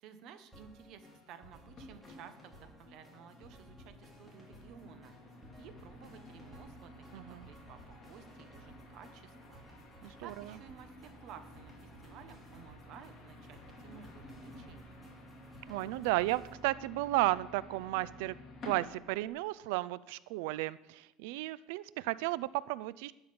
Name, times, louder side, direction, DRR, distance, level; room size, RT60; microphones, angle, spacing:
voice 1, 0.0-5.2 5.6-9.6 10.2-15.0, right 8 dB, 40° right, 9 dB, 1.0 m, -54 dB
sound 1, 0.5-16.5, equal, ahead, 2.6 m, -58 dB
sound 2, 1.7-19.3, left 1 dB, 25° left, 2.5 m, -53 dB
voice 2, 7.1-7.5 10.0-10.1 15.7-18.4 18.6-23.1, right 18 dB, 70° right, 19 dB, 0.3 m, -33 dB
11.5 x 5.7 x 8.6 m, 0.94 s
cardioid pair, 180°, 0 cm